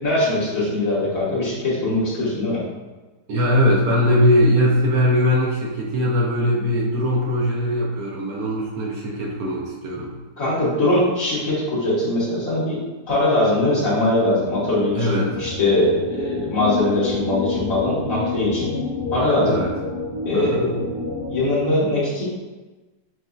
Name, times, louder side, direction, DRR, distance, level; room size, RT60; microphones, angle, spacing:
voice 1, 0.0-2.6 10.4-12.8 13.1-18.7 19.1-19.6 20.3-20.7 21.3-22.2, left 1 dB, 55° left, -8 dB, 1.8 m, -21 dB
voice 2, 3.3-10.1 14.9-15.3 19.4-19.7 20.3-20.7, equal, 65° right, -2 dB, 1.1 m, -20 dB
sound 1, 14.1-21.4, left 3 dB, 75° left, 1.5 m, -29 dB
6.0 x 2.6 x 2.4 m, 1.2 s
omnidirectional pair, 1.8 m